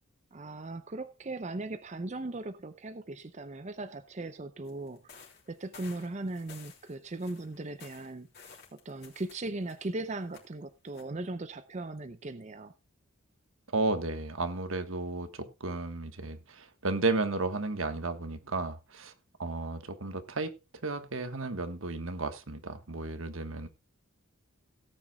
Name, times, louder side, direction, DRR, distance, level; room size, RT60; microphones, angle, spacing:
voice 1, 0.3-5.2 5.5-12.7, right 2 dB, 35° right, 0.6 m, -38 dB
sound 1, 4.6-9.9 10.2-10.5 10.9-11.0, left 6 dB, 50° left, 3.3 m, -54 dB
voice 2, 13.7-19.1 19.4-20.5 20.8-23.7, right 3 dB, 75° right, 1.4 m, -33 dB
17.5 x 9.2 x 2.3 m
head